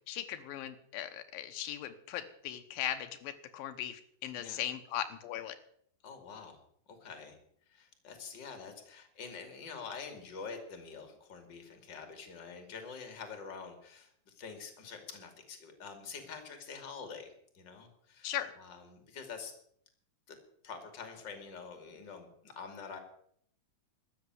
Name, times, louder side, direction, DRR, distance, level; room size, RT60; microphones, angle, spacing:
voice 1, 0.1-5.6 18.2-18.5, left 11 dB, 85° left, 10 dB, 2.7 m, -38 dB
voice 2, 6.0-6.6 6.9-7.4 7.7-19.5 20.3-20.4 20.6-23.0, left 5 dB, 35° left, 7 dB, 2.8 m, -46 dB
13.0 x 8.6 x 9.5 m, 0.66 s
omnidirectional pair, 4.2 m